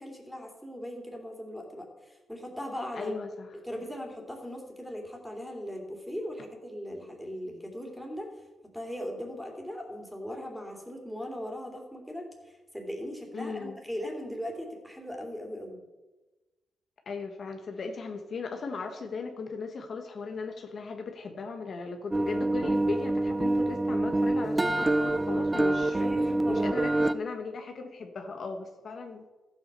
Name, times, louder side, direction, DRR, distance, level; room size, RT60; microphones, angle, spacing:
voice 1, 0.0-3.2 3.6-8.3 8.7-15.8 25.7-26.8, equal, ahead, 0 dB, 3.0 m, -39 dB
voice 2, 2.9-3.5 13.3-13.8 17.0-26.1 26.5-29.2, left 4 dB, 55° left, 5 dB, 1.3 m, -37 dB
sound 1, 22.1-27.1, right 2 dB, 20° right, 0.6 m, -26 dB
14.5 x 8.1 x 6.8 m, 1.2 s
cardioid pair, 110°, 0 cm